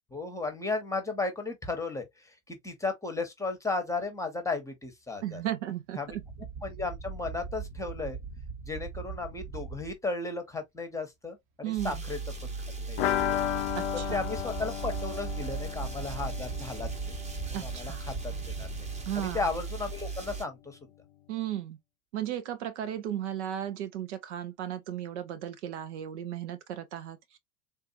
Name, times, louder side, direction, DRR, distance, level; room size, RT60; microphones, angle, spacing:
voice 1, 0.1-5.4 6.0-6.2 6.6-8.2 8.7-12.2 12.9-13.4 13.9-16.9 17.6-18.9 19.2-20.8, left 3 dB, 10° left, 1.1 m, -35 dB
voice 2, 5.2-6.2 11.6-12.0 13.7-14.3 17.5-18.0 19.1-19.4 21.3-21.8 22.1-27.4, right 11 dB, 60° right, 0.7 m, -35 dB
sound 1, 6.1-10.0 12.8-20.1, right 5 dB, 45° right, 1.1 m, -41 dB
sound 2, 11.8-20.4, right 4 dB, 15° right, 1.1 m, -38 dB
sound 3, 13.0-18.6 18.8-18.9 19.2-19.3, left 11 dB, 50° left, 0.5 m, -34 dB
3.7 x 2.6 x 2.6 m
figure-of-eight pair, 80°, 40 cm